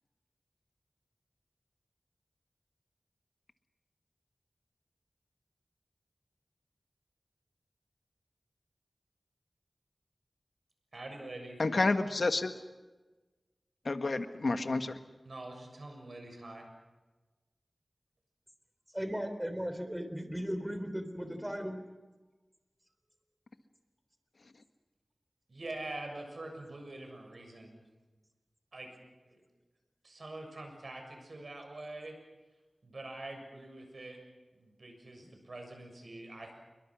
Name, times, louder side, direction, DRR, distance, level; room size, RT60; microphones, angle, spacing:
voice 1, 10.9-11.6 15.3-16.7 25.5-27.8 28.7-28.9 29.2-29.4 30.0-32.2 32.8-34.2 34.6-36.5, right 2 dB, 65° right, 4 dB, 6.9 m, -45 dB
voice 2, 11.6-12.5 13.8-15.0, left 3 dB, 70° left, 8 dB, 1.6 m, -29 dB
voice 3, 18.9-21.8, equal, 10° right, 8 dB, 3.5 m, -36 dB
28.0 x 23.0 x 6.3 m, 1.2 s
wide cardioid pair, 65°, 0 cm